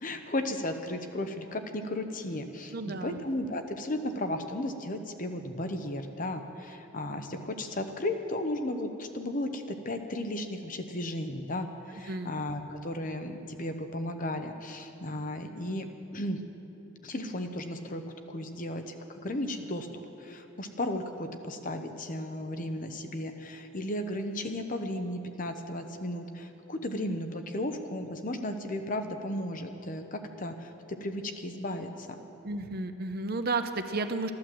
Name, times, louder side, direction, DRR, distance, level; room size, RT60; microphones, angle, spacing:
voice 1, 0.0-15.9 16.1-16.4 17.0-18.0 18.3-32.2, left 1 dB, 40° left, 7 dB, 0.8 m, -35 dB
voice 2, 2.7-3.2 12.1-12.3 32.4-34.3, right 3 dB, 45° right, 8 dB, 0.7 m, -32 dB
13.5 x 11.5 x 7.6 m, 3.0 s
head